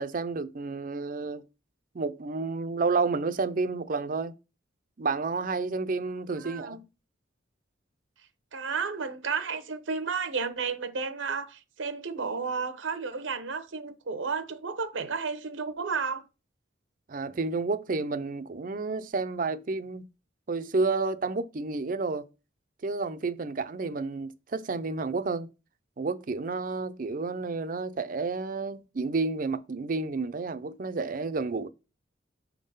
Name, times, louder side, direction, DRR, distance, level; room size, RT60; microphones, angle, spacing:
voice 1, 0.0-1.4 1.9-4.3 5.0-6.8 17.1-20.0 20.5-22.3 22.8-25.5 26.0-31.7, right 3 dB, 45° right, 0.5 m, -30 dB
voice 2, 6.4-6.8 8.5-16.2, right 5 dB, 85° right, 0.8 m, -32 dB
5.9 x 3.7 x 5.5 m
head